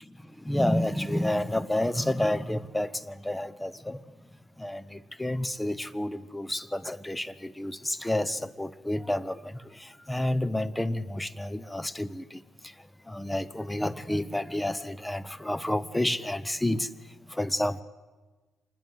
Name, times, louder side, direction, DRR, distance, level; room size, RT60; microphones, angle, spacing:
voice 1, 0.2-4.0 4.6-12.7 13.1-16.9 17.3-17.8, left 1 dB, 10° left, 1.0 m, -30 dB
26.0 x 20.5 x 8.1 m
cardioid pair, 90°, 0 cm